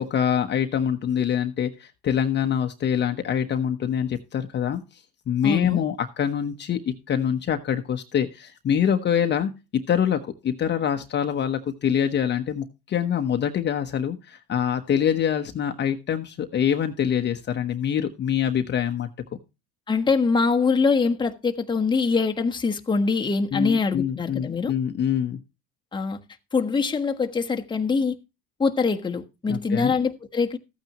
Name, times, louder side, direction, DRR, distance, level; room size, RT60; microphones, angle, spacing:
voice 1, 0.0-4.8 5.3-19.1 23.5-25.4 29.5-29.9, left 8 dB, 35° left, 1.1 m, -25 dB
voice 2, 5.4-5.8 19.9-24.7 25.9-26.2 26.5-28.1 28.6-30.6, left 4 dB, 15° left, 1.3 m, -23 dB
14.5 x 9.0 x 3.0 m
supercardioid pair, 115°, 31 cm